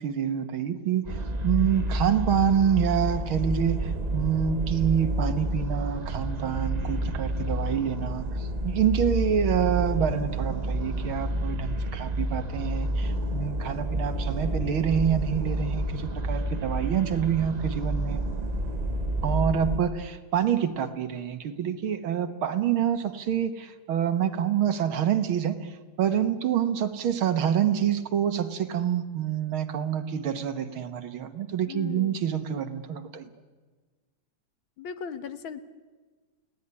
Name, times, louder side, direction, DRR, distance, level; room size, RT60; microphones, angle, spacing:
voice 1, 0.0-18.2 19.2-25.7 26.0-33.3, right 9 dB, 70° right, 10 dB, 2.2 m, -27 dB
sound 1, 1.0-19.8, right 1 dB, 40° right, 0.5 m, -29 dB
voice 2, 31.7-32.2 34.8-35.6, left 7 dB, 65° left, 11 dB, 1.9 m, -37 dB
29.5 x 18.0 x 9.7 m, 1.4 s
omnidirectional pair, 2.4 m